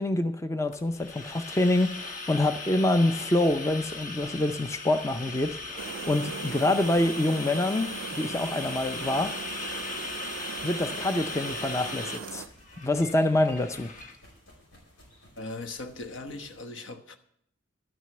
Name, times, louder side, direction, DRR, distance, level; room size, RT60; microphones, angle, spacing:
voice 1, 0.0-9.3 10.6-12.4 12.8-13.9, left 1 dB, 15° left, 0.5 m, -26 dB
sound 1, 0.7-14.2, left 3 dB, 40° left, 1.1 m, -38 dB
sound 2, 2.9-16.6, equal, 85° left, 5.2 m, -57 dB
sound 3, 5.8-12.5, right 6 dB, 90° right, 0.4 m, -40 dB
voice 2, 15.4-17.2, left 2 dB, 70° left, 1.0 m, -39 dB
12.0 x 6.3 x 7.7 m
head